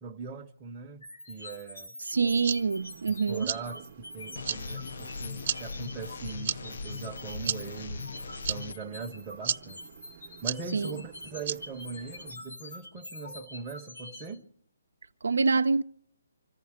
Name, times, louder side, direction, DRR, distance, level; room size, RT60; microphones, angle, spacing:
voice 1, 0.0-2.0 3.1-8.1 8.5-9.9 10.4-14.5, right 4 dB, 15° right, 0.8 m, -41 dB
sound 1, 1.0-14.3, left 1 dB, 85° left, 6.5 m, -45 dB
voice 2, 2.0-3.5 10.7-11.0 15.2-15.8, right 4 dB, 85° right, 0.6 m, -26 dB
sound 2, 2.1-12.3, right 8 dB, 45° right, 0.8 m, -38 dB
sound 3, 4.4-8.7, left 4 dB, 60° left, 0.5 m, -39 dB
26.0 x 14.0 x 3.6 m
hypercardioid pair, 160°, 0 cm